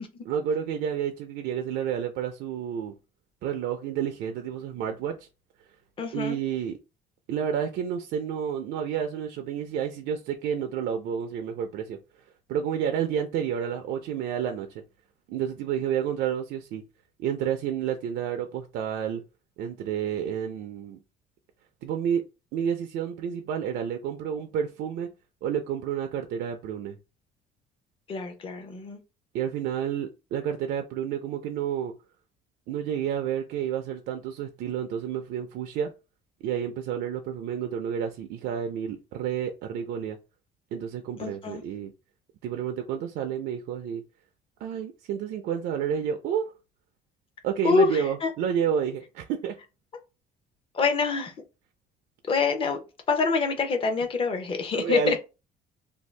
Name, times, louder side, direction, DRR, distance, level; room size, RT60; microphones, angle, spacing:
voice 1, 0.3-2.9 3.4-5.2 6.1-6.8 7.3-12.0 12.5-14.8 15.3-16.8 17.2-19.2 19.6-21.0 21.8-22.2 22.5-25.1 25.4-27.0 29.3-31.9 32.7-35.9 36.4-40.2 40.7-41.9 42.4-44.0 44.6-46.5 47.4-49.6 54.7-55.2, right 8 dB, 70° right, 0.4 m, -30 dB
voice 2, 6.0-6.4 28.1-29.0 41.2-41.6 47.6-48.3 50.7-51.3 52.3-55.2, left 4 dB, 30° left, 0.6 m, -26 dB
2.6 x 2.3 x 3.2 m
cardioid pair, 125°, 17 cm